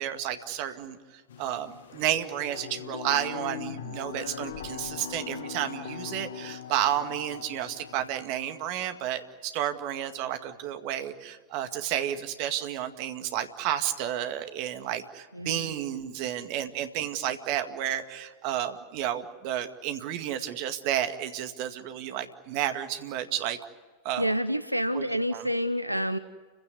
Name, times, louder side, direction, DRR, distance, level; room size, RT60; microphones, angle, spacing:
voice 1, 0.0-23.6 24.0-24.3 24.9-25.5, right 11 dB, 45° right, 8 dB, 2.0 m, -31 dB
sound 1, 1.3-8.1, left 9 dB, 60° left, 1.1 m, -40 dB
voice 2, 15.3-15.7 24.2-26.2, equal, 90° right, 12 dB, 0.8 m, -28 dB
30.0 x 16.5 x 9.6 m, 1.5 s
figure-of-eight pair, 90°, 0 cm